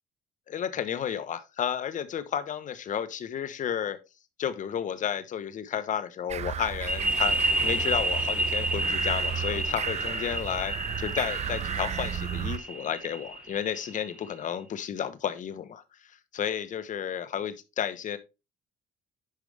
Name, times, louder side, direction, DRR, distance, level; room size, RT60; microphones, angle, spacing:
voice 1, 0.5-4.0 4.4-15.8 16.3-18.2, left 9 dB, 50° left, 1.1 m, -32 dB
sound 1, 6.3-12.6, right 8 dB, 40° right, 0.6 m, -34 dB
sound 2, 6.9-14.3, right 1 dB, 10° right, 3.1 m, -30 dB
10.5 x 5.0 x 3.4 m
cardioid pair, 110°, 17 cm